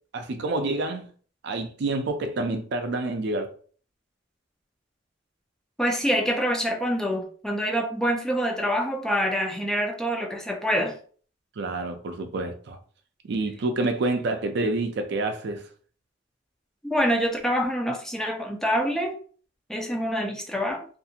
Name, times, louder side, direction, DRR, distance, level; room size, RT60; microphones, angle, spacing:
voice 1, 0.1-1.1 1.4-3.5 11.6-12.8 13.3-15.6, right 2 dB, 65° right, 0.4 m, -28 dB
voice 2, 5.8-11.0 16.8-19.1 19.7-20.9, equal, 5° left, 0.3 m, -26 dB
2.5 x 2.4 x 2.7 m
head